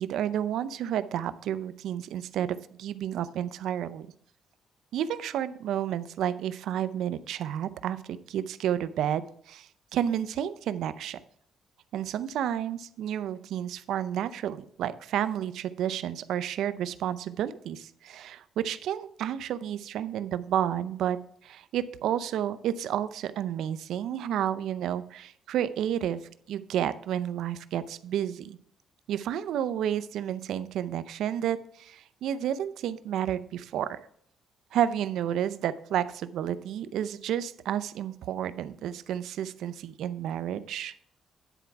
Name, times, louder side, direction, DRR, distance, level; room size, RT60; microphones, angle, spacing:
voice 1, 0.0-4.1 4.9-11.2 11.9-26.2 26.5-28.6 29.1-34.0 34.7-40.9, right 10 dB, 80° right, 14 dB, 0.5 m, -31 dB
10.0 x 4.6 x 5.8 m, 0.65 s
cardioid pair, 90°, 0 cm